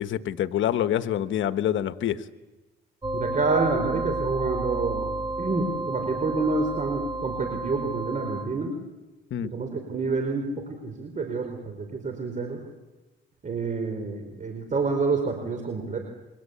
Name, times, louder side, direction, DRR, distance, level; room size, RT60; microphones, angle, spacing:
voice 1, 0.0-2.2 9.3-9.5, left 11 dB, 75° left, 11 dB, 1.2 m, -26 dB
sound 1, 3.0-8.4, right 2 dB, 20° right, 2.5 m, -31 dB
voice 2, 3.1-8.7 9.4-12.6 13.4-16.0, right 3 dB, 40° right, 5 dB, 4.7 m, -28 dB
30.0 x 23.5 x 8.5 m, 1.1 s
cardioid pair, 90°, 20 cm